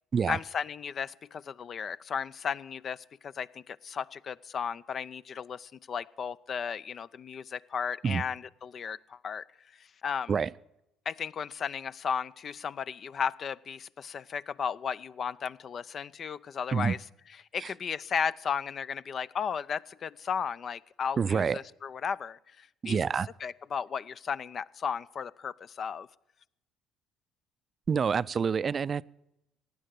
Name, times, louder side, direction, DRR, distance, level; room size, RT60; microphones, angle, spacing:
voice 1, 0.3-9.4 10.0-10.3 11.1-17.0 17.5-23.0 23.4-26.1, left 7 dB, 50° left, 17 dB, 0.4 m, -35 dB
voice 2, 21.2-21.6 22.8-23.3 27.9-29.0, right 6 dB, 40° right, 18 dB, 0.4 m, -27 dB
15.5 x 9.3 x 7.6 m, 0.85 s
hypercardioid pair, 55°, 0 cm